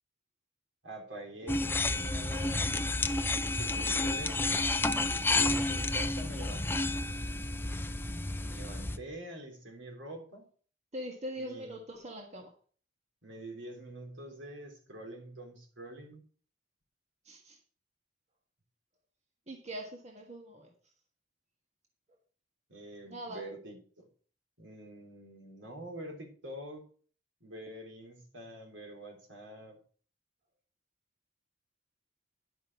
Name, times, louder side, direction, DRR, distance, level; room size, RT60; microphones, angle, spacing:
voice 1, 0.8-2.9 3.5-4.7 5.2-6.8 8.5-10.5 11.4-11.8 13.2-16.2 22.7-24.1 24.6-26.8 27.4-29.8, right 1 dB, 75° right, 2 dB, 3.5 m, -46 dB
sound 1, 1.5-9.0, left 2 dB, 10° left, 0.5 m, -31 dB
voice 2, 10.9-12.5 17.2-17.6 19.5-20.7 23.1-23.4, equal, 35° right, 1 dB, 1.7 m, -42 dB
11.0 x 6.3 x 6.1 m, 0.44 s
head